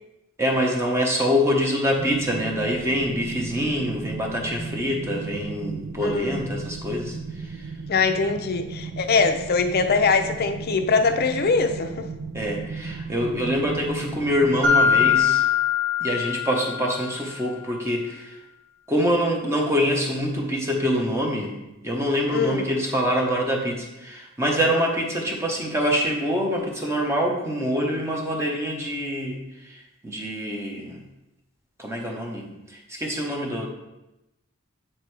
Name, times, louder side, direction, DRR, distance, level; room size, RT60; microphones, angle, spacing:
voice 1, 0.4-7.7 12.3-15.4 16.0-18.4 18.9-21.6 21.8-31.0 31.8-33.7, equal, 10° right, 0 dB, 0.8 m, -25 dB
sound 1, 2.0-15.2, right 4 dB, 60° right, 0.4 m, -36 dB
voice 2, 6.0-6.4 7.9-12.1 22.3-22.7, left 4 dB, 45° left, 7 dB, 0.5 m, -22 dB
Mallet percussion, 14.6-17.2, left 7 dB, 35° right, 1.4 m, -21 dB
8.7 x 4.2 x 3.3 m, 0.96 s
head